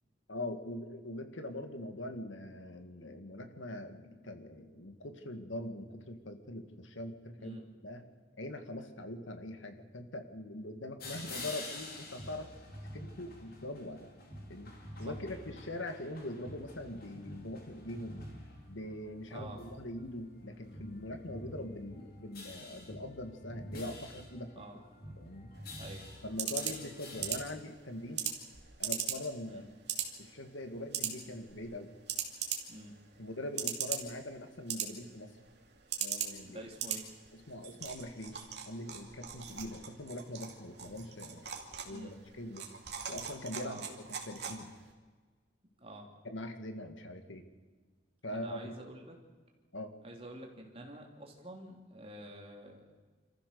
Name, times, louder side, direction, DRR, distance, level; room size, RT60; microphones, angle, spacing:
voice 1, 0.3-7.6 7.8-8.0 8.4-12.5 12.9-14.1 14.5-14.7 15.0-18.2 18.7-24.5 25.2-25.5 26.2-28.3 28.8-29.7 30.2-31.9 33.2-35.3 36.0-36.7 37.3-41.5 41.8-42.8 43.1-44.0 44.2-44.7 46.2-47.4 48.2-48.8 49.7-49.9, left 1 dB, 75° left, 7 dB, 1.9 m, -42 dB
sound 1, 11.0-27.4, left 1 dB, 50° left, 3.7 m, -48 dB
voice 2, 19.3-19.6 24.5-24.8 25.8-26.0 29.5-29.6 32.7-32.9 36.4-37.1 41.9-42.2 43.6-43.8 45.8-46.1 48.3-49.1 50.0-53.0, right 1 dB, 30° right, 0 dB, 3.3 m, -48 dB
sound 2, 25.5-44.9, right 8 dB, 55° right, 2.6 m, -41 dB
27.0 x 14.5 x 6.9 m, 1.4 s
head